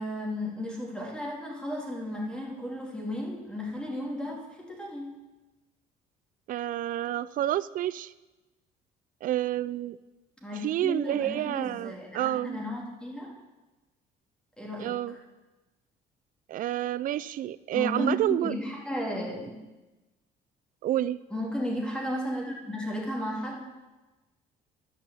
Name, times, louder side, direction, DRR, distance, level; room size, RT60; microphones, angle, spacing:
voice 1, 0.0-5.2 10.4-13.4 14.6-15.2 17.7-19.6 21.3-23.7, left 1 dB, 5° left, -3 dB, 2.7 m, -34 dB
voice 2, 6.5-8.1 9.2-10.0 10.6-12.6 14.8-15.2 16.5-18.5 20.8-21.2, right 13 dB, 55° right, 17 dB, 0.4 m, -29 dB
12.0 x 5.5 x 7.5 m, 1.1 s
cardioid pair, 110°, 17 cm